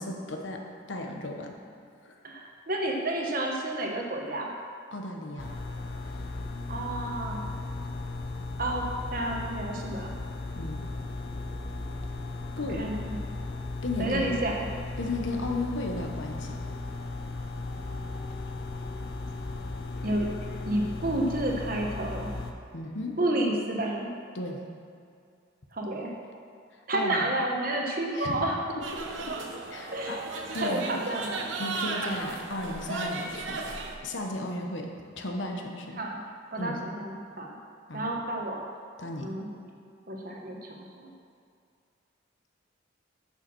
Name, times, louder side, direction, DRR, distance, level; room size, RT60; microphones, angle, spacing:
voice 1, 0.0-1.6 2.0-2.1 4.9-5.5 10.5-10.8 12.6-12.9 13.8-14.3 15.0-16.6 22.7-23.2 24.3-24.7 26.9-27.2 28.1-28.4 29.3-29.4 29.7-30.8 31.6-33.6 34.0-36.0 36.6-36.8 37.9-38.1 39.0-39.3, left 2 dB, 70° left, 2 dB, 1.1 m, -35 dB
voice 2, 2.2-4.5 6.7-7.4 8.6-8.8 9.1-10.1 12.7-13.2 14.0-14.6 20.0-20.3 20.6-22.3 23.2-24.1 25.7-26.1 26.9-28.6 29.9-30.2 30.6-31.4 36.0-36.2 36.5-37.5 37.9-38.6 39.2-39.6 40.1-41.1, right 1 dB, 45° right, 0 dB, 1.2 m, -30 dB
sound 1, 5.4-22.5, left 2 dB, 50° left, 0.7 m, -36 dB
sound 2, 28.8-34.0, right 3 dB, 75° right, 0.9 m, -35 dB
7.2 x 6.8 x 6.2 m, 2.3 s
head